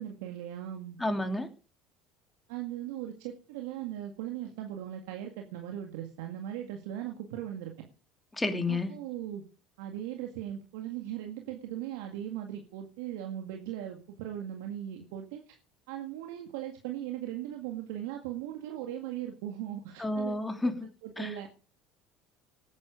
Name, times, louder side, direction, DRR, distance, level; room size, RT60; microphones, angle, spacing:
voice 1, 0.0-1.0 2.5-7.7 8.7-9.4 9.8-15.6 15.9-20.3 21.0-21.5, right 11 dB, 75° right, 3 dB, 1.9 m, -38 dB
voice 2, 1.0-1.5 8.3-8.9 20.0-20.9 21.2-21.4, left 2 dB, 10° left, 7 dB, 2.8 m, -30 dB
18.5 x 9.6 x 5.1 m, 0.37 s
hypercardioid pair, 70°, 0 cm